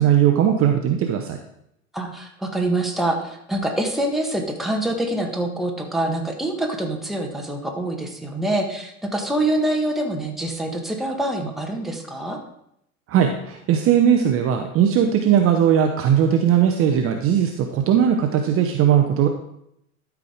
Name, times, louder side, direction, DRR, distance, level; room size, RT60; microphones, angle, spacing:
voice 1, 0.0-1.4 13.1-19.3, right 9 dB, 30° right, 4 dB, 0.8 m, -18 dB
voice 2, 1.9-12.4, right 1 dB, ahead, 1 dB, 1.4 m, -25 dB
12.0 x 4.8 x 5.0 m, 0.77 s
figure-of-eight pair, 90°, 44 cm